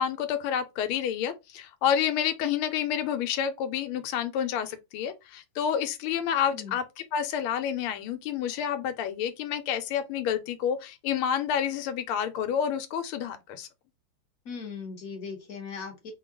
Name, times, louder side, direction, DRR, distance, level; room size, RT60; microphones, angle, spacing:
voice 1, 0.0-6.8 7.1-13.7, left 8 dB, 80° left, 1.5 m, -29 dB
voice 2, 14.4-16.1, left 5 dB, 50° left, 1.2 m, -38 dB
3.6 x 2.3 x 3.6 m
omnidirectional pair, 2.4 m